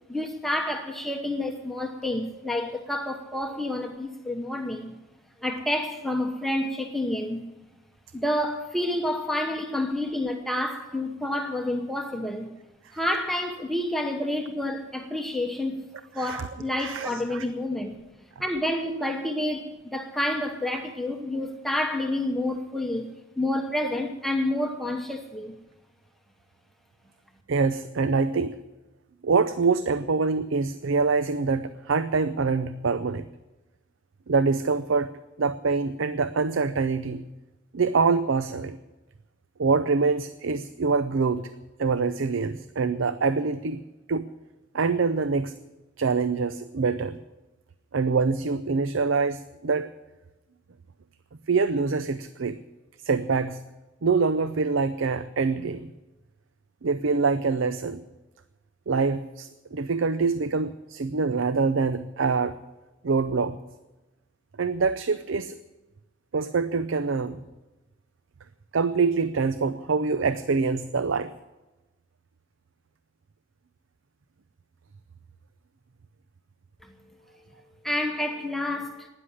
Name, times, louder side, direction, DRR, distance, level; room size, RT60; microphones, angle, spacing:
voice 1, 0.1-5.0 5.4-7.4 8.1-12.5 12.9-15.8 16.1-18.0 18.4-23.1 23.4-25.6 77.8-79.1, left 1 dB, ahead, 1.0 m, -29 dB
voice 2, 16.2-16.5 16.8-17.4 27.5-28.6 29.2-33.3 34.3-35.1 35.4-37.2 37.7-38.8 39.6-41.5 41.8-43.8 44.1-44.3 44.7-45.5 46.0-47.2 47.9-49.9 51.5-52.6 53.0-53.6 54.0-55.9 56.8-58.0 58.9-62.6 63.0-63.6 64.6-65.6 66.3-67.4 68.7-71.3, right 4 dB, 90° right, 0.6 m, -25 dB
13.0 x 10.0 x 9.8 m
head